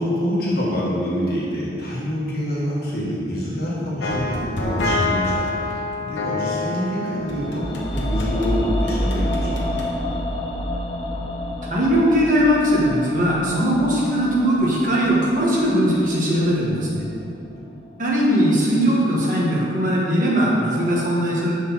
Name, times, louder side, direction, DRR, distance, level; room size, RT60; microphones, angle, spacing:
voice 1, 0.0-9.8 20.7-20.9, equal, 50° left, -7 dB, 1.7 m, -26 dB
sound 1, 4.0-8.5 8.9-9.9, left 2 dB, 70° left, 1.2 m, -27 dB
sound 2, 7.2-17.3 17.6-17.7, equal, 25° left, 0.7 m, -28 dB
voice 2, 11.7-17.0 18.0-21.5, equal, 45° right, -6 dB, 1.7 m, -19 dB
6.7 x 4.9 x 5.7 m, 2.7 s
head